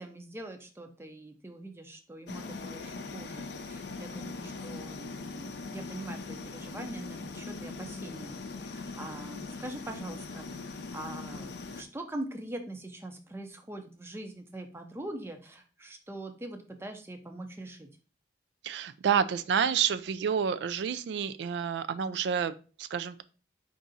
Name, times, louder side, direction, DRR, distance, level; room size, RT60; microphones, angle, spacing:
voice 1, 0.0-17.9, right 1 dB, 15° right, 5 dB, 0.5 m, -43 dB
sound 1, 2.3-11.8, left 3 dB, 60° left, 0.5 m, -41 dB
voice 2, 18.6-23.2, right 7 dB, 65° right, 12 dB, 0.3 m, -29 dB
4.6 x 2.6 x 4.0 m, 0.37 s
head